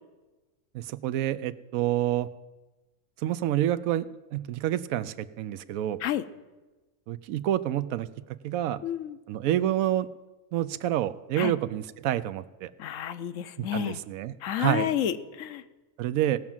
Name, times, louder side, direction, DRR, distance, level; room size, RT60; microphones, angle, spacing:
voice 1, 0.7-2.3 3.2-4.0 4.3-6.0 7.1-8.1 8.4-8.8 9.3-10.1 10.5-12.7 13.6-14.9 16.0-16.4, right 12 dB, 80° right, 15 dB, 1.0 m, -28 dB
voice 2, 8.8-9.2 11.4-11.5 12.8-14.0 14.4-15.6, left 10 dB, 75° left, 12 dB, 1.0 m, -30 dB
17.5 x 6.0 x 7.2 m, 1.2 s
omnidirectional pair, 1.4 m